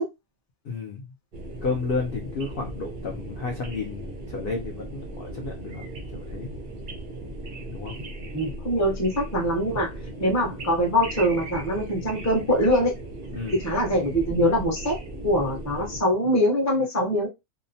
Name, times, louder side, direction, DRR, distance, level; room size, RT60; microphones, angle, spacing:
voice 1, 0.6-1.1 1.6-5.8 6.1-6.5 7.7-7.9 13.3-13.6, left 4 dB, 70° left, 2 dB, 0.5 m, -32 dB
sound 1, 1.3-16.0, right 1 dB, 50° right, 0.6 m, -37 dB
voice 2, 8.3-9.9 10.2-12.9 13.6-17.3, equal, 20° left, 0 dB, 0.5 m, -23 dB
2.8 x 2.1 x 2.7 m, 0.22 s
omnidirectional pair, 1.6 m